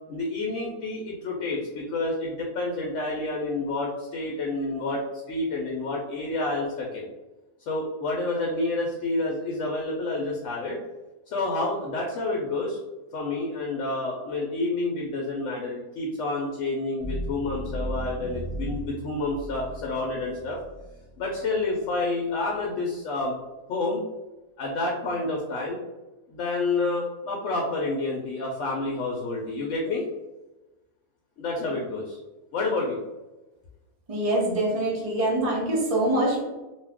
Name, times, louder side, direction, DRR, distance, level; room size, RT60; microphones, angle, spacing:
voice 1, 0.1-5.0 5.3-7.1 7.7-10.8 11.3-12.8 13.1-20.6 21.2-23.3 23.7-24.0 24.6-25.8 26.3-30.1 31.4-32.2 32.5-33.0, left 2 dB, 65° left, -1 dB, 0.8 m, -29 dB
sound 1, 17.0-21.8, right 1 dB, 30° left, 0.8 m, -36 dB
voice 2, 34.1-36.5, right 1 dB, 40° right, -4 dB, 0.5 m, -24 dB
2.6 x 2.3 x 3.4 m, 1.1 s
omnidirectional pair, 1.5 m